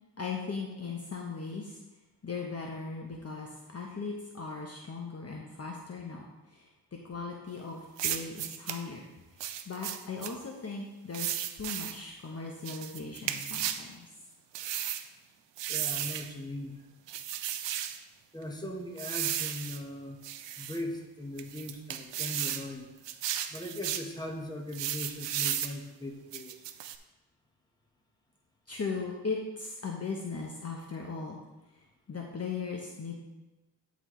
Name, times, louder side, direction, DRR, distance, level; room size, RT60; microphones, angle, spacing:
voice 1, 0.2-1.8 2.2-9.1 9.3-14.1 28.7-31.4 31.7-33.2, left 4 dB, 35° left, 0 dB, 0.9 m, -38 dB
sound 1, 8.0-8.8 9.4-10.3 11.1-12.0 12.6-13.9 14.5-15.1 15.6-16.3 17.1-18.0 19.0-19.8 20.2-20.8 21.4-22.7 23.0-24.1 24.7-25.8 26.3-27.0, right 11 dB, 90° right, 0.5 m, -34 dB
voice 2, 15.7-16.8 18.3-20.2 20.6-22.9 23.5-26.6, left 1 dB, 10° left, 0 dB, 1.2 m, -39 dB
12.0 x 4.1 x 3.1 m, 1.1 s
cardioid pair, 70°, 42 cm